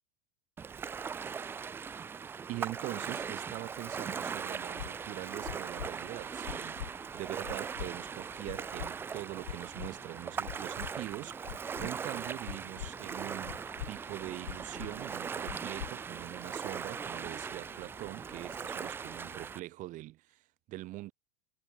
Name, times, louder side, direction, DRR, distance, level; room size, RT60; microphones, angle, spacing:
Ocean, 0.6-19.6, right 6 dB, 10° right, 0.3 m, -40 dB
voice 1, 2.5-21.1, right 17 dB, 40° right, 5.0 m, -43 dB
sound 1, 3.8-19.4, left 9 dB, 25° left, 3.0 m, -60 dB
sound 2, 4.8-4.9 5.4-5.9 6.4-6.9 7.4-7.9 8.4-8.9 9.4-9.9 10.4-10.9 11.4-11.9 12.4-12.9 13.4-13.9 14.4-14.9 15.4-15.9, left 14 dB, 80° left, 2.5 m, -41 dB
supercardioid pair, 125°, 19 cm